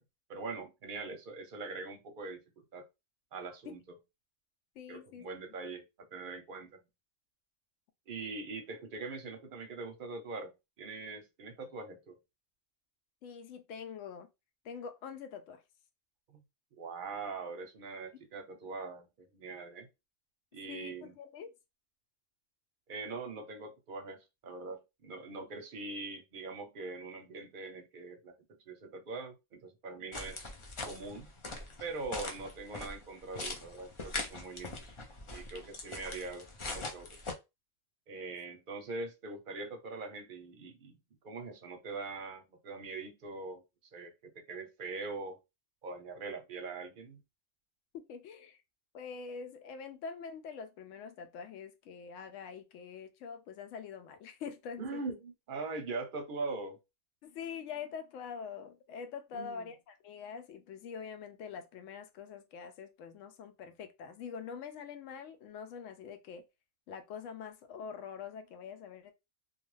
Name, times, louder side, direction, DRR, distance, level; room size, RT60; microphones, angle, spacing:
voice 1, 0.3-2.8 3.3-4.0 4.9-6.9 8.1-10.5 10.8-12.2 16.3-16.4 16.7-19.9 20.5-21.2 22.9-28.4 28.7-30.5 30.8-31.3 31.8-34.9 35.3-37.1 38.1-41.0 41.2-43.6 43.9-45.4 45.8-47.2 54.8-56.8 59.3-59.7, right 3 dB, 50° right, 0.7 m, -42 dB
voice 2, 4.8-5.3 13.2-14.3 14.6-15.6 20.7-21.5 32.1-32.2 47.9-48.6 48.9-55.0 57.2-66.4 66.9-69.1, left 6 dB, 75° left, 0.9 m, -45 dB
sound 1, 30.1-37.3, left 2 dB, 55° left, 0.3 m, -42 dB
2.4 x 2.4 x 3.1 m
omnidirectional pair, 1.4 m